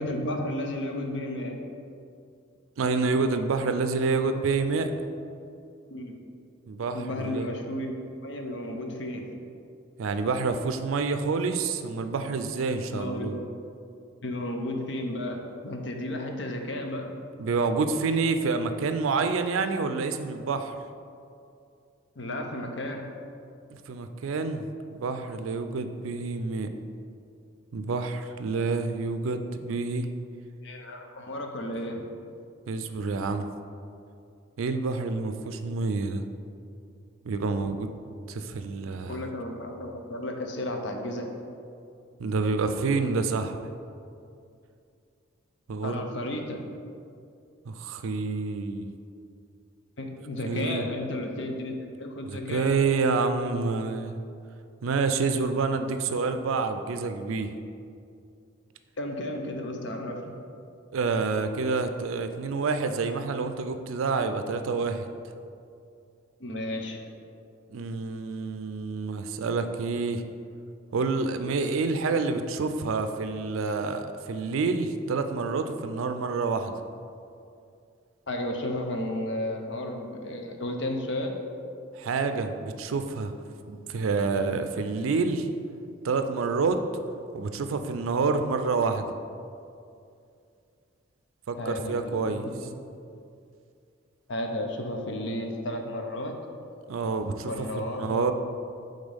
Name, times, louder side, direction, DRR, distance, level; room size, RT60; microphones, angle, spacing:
voice 1, 0.0-1.6 5.9-6.2 6.9-9.3 12.9-13.5 14.2-17.1 22.2-23.1 30.6-32.0 38.9-41.3 45.8-46.7 50.0-52.7 59.0-60.4 66.4-67.0 78.3-81.3 91.6-92.7 94.3-96.4 97.5-98.3, left 1 dB, 60° left, 3 dB, 0.6 m, -33 dB
voice 2, 2.8-4.9 6.7-7.5 10.0-13.4 17.4-20.7 23.9-24.7 24.9-26.7 27.7-30.1 32.7-33.5 34.6-36.2 37.3-37.9 38.3-39.2 42.2-43.6 45.7-46.0 47.7-48.9 50.5-50.9 52.2-54.1 54.8-57.5 60.9-65.1 67.7-70.2 70.9-76.7 82.0-83.3 83.7-85.5 86.0-86.8 87.3-89.1 91.5-92.4 96.9-98.3, right 4 dB, 85° right, 8 dB, 0.4 m, -28 dB
5.3 x 3.7 x 5.2 m, 2.5 s
head